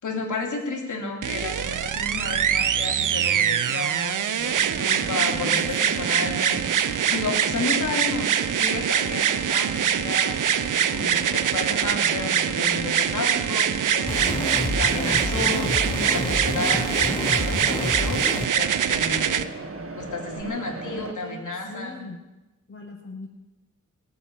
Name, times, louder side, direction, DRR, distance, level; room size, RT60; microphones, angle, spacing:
voice 1, 0.0-6.7 7.1-18.3 18.5-19.4 20.0-22.0, left 3 dB, 70° left, 1 dB, 3.1 m, -32 dB
sound 1, 1.2-19.4 20.4-20.5, right 9 dB, 70° right, 0.8 m, -24 dB
Mechanisms, 4.4-21.1, right 3 dB, 45° right, 1.6 m, -37 dB
voice 2, 5.2-6.5 20.8-22.2 22.7-23.3, left 3 dB, 40° left, 0 dB, 5.1 m, -40 dB
sound 2, 14.1-18.5, left 2 dB, 15° left, 1.0 m, -29 dB
18.0 x 7.9 x 8.7 m, 1.0 s
cardioid pair, 70°, 32 cm